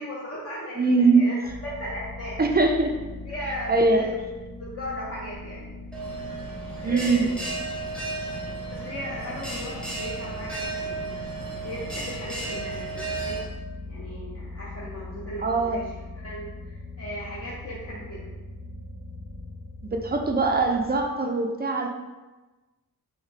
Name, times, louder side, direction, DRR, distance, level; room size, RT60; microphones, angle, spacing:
voice 1, 0.0-2.4 3.2-4.2 4.6-5.7 6.8-7.3 8.7-11.1 11.6-13.5 13.9-18.3, equal, 40° left, -7 dB, 0.7 m, -37 dB
voice 2, 0.8-1.3 2.4-2.9 3.7-4.1 6.8-7.2 15.4-15.8 19.8-21.9, right 3 dB, 30° right, 3 dB, 0.4 m, -22 dB
sound 1, 1.4-21.1, left 2 dB, 80° left, 0.8 m, -41 dB
Bell, 5.9-13.4, right 3 dB, 5° left, 0.7 m, -34 dB
3.9 x 2.1 x 3.1 m, 1.2 s
wide cardioid pair, 75°, 35 cm